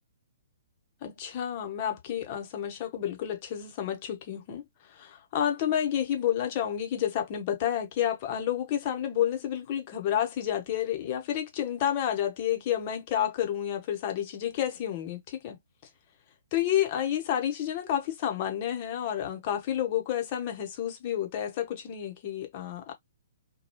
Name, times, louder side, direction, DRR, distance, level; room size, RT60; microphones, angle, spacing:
voice 1, 1.0-4.6 4.9-15.6 16.5-22.9, left 10 dB, 35° left, 0.9 m, -30 dB
3.0 x 2.2 x 3.0 m
figure-of-eight pair, 125°, 0 cm